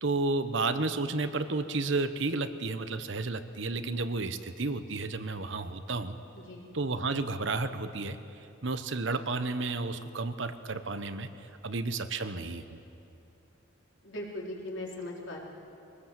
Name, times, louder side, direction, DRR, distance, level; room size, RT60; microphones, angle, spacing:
voice 1, 0.0-6.2 6.7-8.2 8.6-12.8, right 3 dB, 65° right, 10 dB, 1.0 m, -32 dB
voice 2, 6.3-6.7 14.0-15.4, left 1 dB, 65° left, -2 dB, 3.8 m, -39 dB
23.0 x 19.5 x 7.5 m, 2.8 s
head